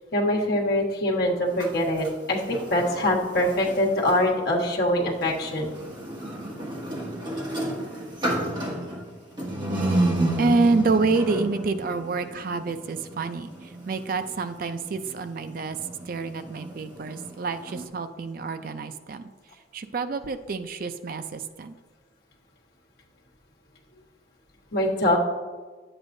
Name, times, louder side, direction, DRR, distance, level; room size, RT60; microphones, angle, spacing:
voice 1, 0.1-5.7 24.7-25.2, left 1 dB, 55° left, -2 dB, 1.3 m, -24 dB
sound 1, 1.5-4.3 5.1-17.9, right 1 dB, 25° right, 1.3 m, -32 dB
voice 2, 10.4-15.8 16.1-19.2 19.7-21.8, right 3 dB, 45° right, 10 dB, 0.4 m, -27 dB
10.5 x 8.0 x 2.6 m, 1.4 s
head